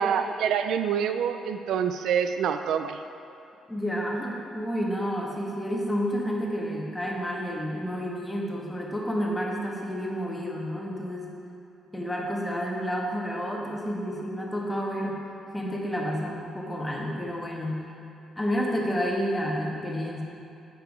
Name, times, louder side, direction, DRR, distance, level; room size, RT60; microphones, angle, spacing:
voice 1, 0.0-3.0, right 7 dB, 80° right, 9 dB, 0.3 m, -26 dB
voice 2, 3.7-11.3 11.9-15.2 15.5-17.9 18.4-20.2, equal, 10° left, -3 dB, 1.4 m, -30 dB
8.8 x 4.9 x 4.6 m, 2.9 s
cardioid pair, 90°, 0 cm